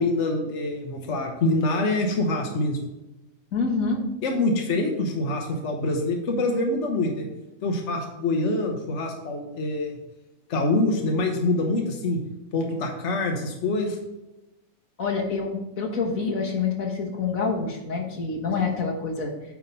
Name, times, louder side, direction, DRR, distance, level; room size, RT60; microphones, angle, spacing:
voice 1, 0.0-2.8 4.2-7.3 7.6-9.9 10.5-12.2 12.5-14.0, left 2 dB, 60° left, 2 dB, 1.3 m, -25 dB
voice 2, 3.5-4.0 15.0-19.3, left 4 dB, 85° left, 0 dB, 1.8 m, -27 dB
9.2 x 3.7 x 5.3 m, 0.99 s
omnidirectional pair, 1.4 m